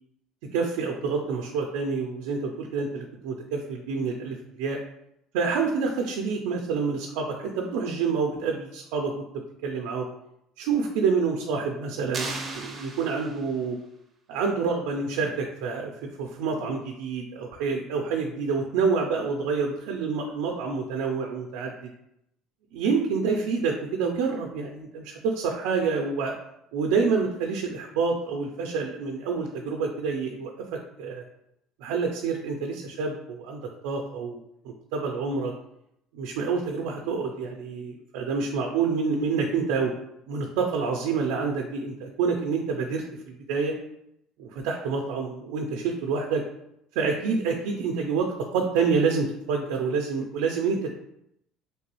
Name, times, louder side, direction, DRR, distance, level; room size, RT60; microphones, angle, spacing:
voice 1, 0.5-4.8 5.3-9.2 9.6-10.1 10.6-13.8 14.3-15.9 16.2-21.7 22.7-26.3 26.7-31.2 31.8-35.5 36.1-39.9 40.3-43.0 43.5-43.7 44.4-46.4 47.0-50.9, right 5 dB, 80° right, 1 dB, 0.4 m, -27 dB
sound 1, 12.1-13.7, right 3 dB, 15° right, 0.5 m, -36 dB
3.2 x 3.0 x 3.0 m, 0.79 s
cardioid pair, 180°, 0 cm